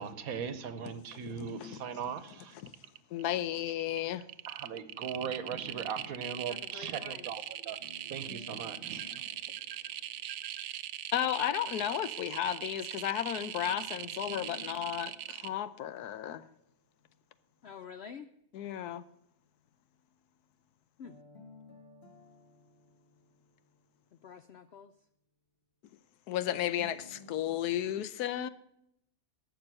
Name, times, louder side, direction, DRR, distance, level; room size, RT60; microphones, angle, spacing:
voice 1, 0.0-2.6 4.5-7.8 8.1-9.3 9.7-9.9, right 7 dB, 70° right, 1.3 m, -39 dB
voice 2, 1.3-1.8 2.6-2.7 3.1-4.2 11.1-16.5 18.5-19.0 26.3-28.5, left 11 dB, 85° left, 1.2 m, -34 dB
Geiger Counter, 2.1-2.3 2.6-3.2 3.6-15.5, right 12 dB, 90° right, 1.2 m, -41 dB
voice 3, 6.5-7.5 17.6-18.3 21.0-21.1 24.2-24.9, left 6 dB, 70° left, 0.6 m, -48 dB
sound 1, 7.8-10.9 13.6-16.9 21.0-24.1 26.8-27.6, left 2 dB, 45° left, 1.7 m, -55 dB
11.5 x 7.1 x 7.6 m
omnidirectional pair, 1.6 m